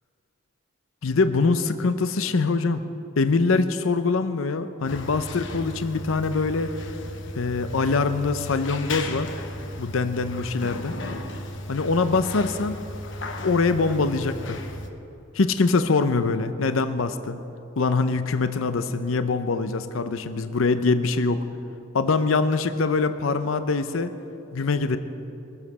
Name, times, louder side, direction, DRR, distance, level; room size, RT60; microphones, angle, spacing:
voice 1, 1.0-2.8 3.2-6.7 7.4-9.3 9.8-11.0 11.7-12.8 13.4-14.6 15.3-17.4 17.8-21.4 21.9-24.1 24.5-25.0, left 4 dB, 80° left, 10 dB, 0.6 m, -23 dB
sound 1, 4.9-14.9, left 1 dB, 65° left, 1.1 m, -35 dB
22.0 x 7.4 x 6.7 m, 2.8 s
head